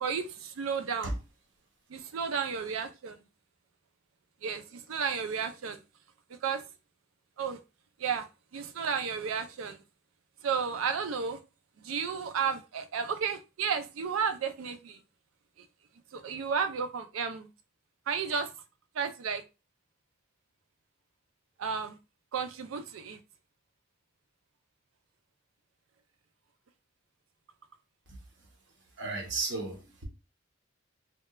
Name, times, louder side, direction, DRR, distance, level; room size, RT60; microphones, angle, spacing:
voice 1, 0.0-1.1 1.9-3.2 4.4-5.8 6.4-6.6 7.4-7.6 8.0-8.3 8.5-9.8 10.4-11.4 11.8-15.0 16.1-17.5 18.1-18.5 19.0-19.4 21.6-22.0 22.3-23.2, right 6 dB, 85° right, 0.4 m, -32 dB
voice 2, 28.1-30.0, right 3 dB, 60° right, 0.8 m, -36 dB
2.8 x 2.2 x 2.2 m
head